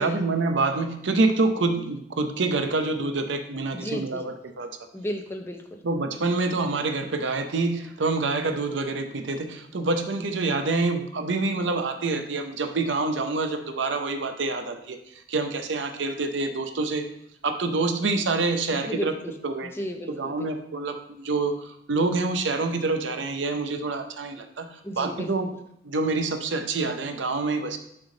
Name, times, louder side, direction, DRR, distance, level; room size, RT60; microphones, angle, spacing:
voice 1, 0.0-4.7 5.8-15.0 15.3-17.1 17.4-19.1 19.4-19.7 20.1-25.5 25.8-27.8, right 3 dB, 80° right, 7 dB, 0.6 m, -26 dB
voice 2, 3.7-4.2 4.9-5.8 18.7-19.3 19.7-20.5 24.8-25.3, equal, 15° left, 4 dB, 0.5 m, -34 dB
6.3 x 3.6 x 4.9 m, 0.73 s
head